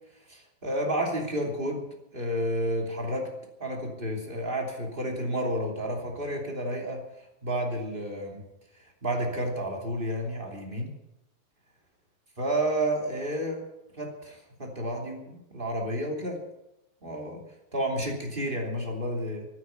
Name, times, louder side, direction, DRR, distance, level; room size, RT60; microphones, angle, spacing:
voice 1, 0.3-1.8 2.1-3.3 3.6-7.0 7.4-8.4 9.0-10.9 12.4-13.6 14.0-16.4 17.0-17.4 17.7-19.5, right 1 dB, 15° right, 0 dB, 2.7 m, -31 dB
14.0 x 9.7 x 9.3 m, 0.89 s
omnidirectional pair, 4.1 m